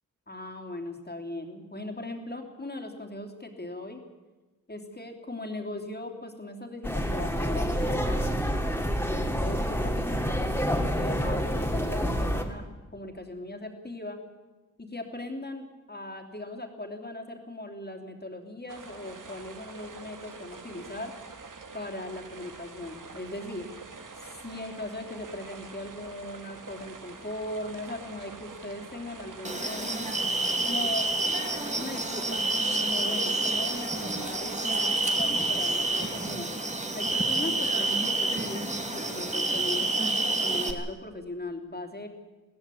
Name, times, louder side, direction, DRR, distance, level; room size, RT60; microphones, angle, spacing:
voice 1, 0.3-4.0 4.7-8.4 8.8-12.7 12.9-14.2 14.8-21.1 21.7-23.7 24.2-30.0 30.6-31.1 31.6-32.5 32.8-36.5 36.9-42.1, left 1 dB, 30° left, 3 dB, 3.3 m, -39 dB
sound 1, 6.8-12.4, equal, 5° left, 2.7 m, -28 dB
sound 2, 18.7-36.4, right 4 dB, 70° right, 2.0 m, -46 dB
sound 3, 29.4-40.7, right 2 dB, 20° right, 2.3 m, -28 dB
22.0 x 16.5 x 8.6 m, 1.2 s
wide cardioid pair, 85°, 33 cm